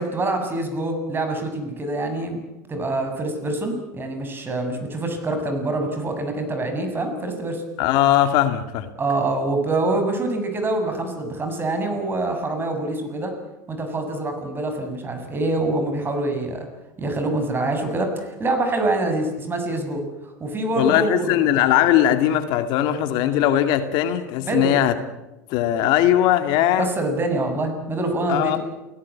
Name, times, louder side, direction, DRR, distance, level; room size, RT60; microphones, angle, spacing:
voice 1, 0.0-7.6 9.0-13.4 13.7-16.7 17.0-20.0 20.4-21.4 24.5-24.8 26.8-28.6, right 2 dB, 25° right, 6 dB, 7.5 m, -25 dB
voice 2, 7.8-8.9 20.8-24.9 25.5-26.9 28.3-28.6, left 12 dB, 60° left, 9 dB, 2.2 m, -19 dB
28.5 x 18.0 x 8.6 m, 1.0 s
hypercardioid pair, 90°, 9 cm